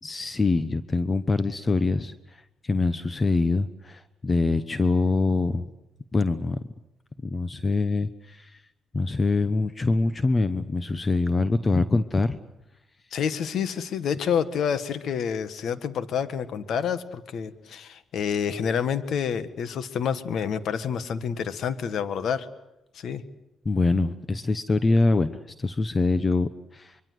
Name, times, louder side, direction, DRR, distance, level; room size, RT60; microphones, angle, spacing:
voice 1, 0.0-5.7 6.1-6.6 7.2-8.6 8.9-12.4 23.6-27.0, left 3 dB, 30° left, 12 dB, 1.1 m, -24 dB
voice 2, 13.1-22.5 22.9-23.2, left 7 dB, 65° left, 12 dB, 1.7 m, -28 dB
25.0 x 23.5 x 8.0 m, 0.89 s
cardioid pair, 90°, 0 cm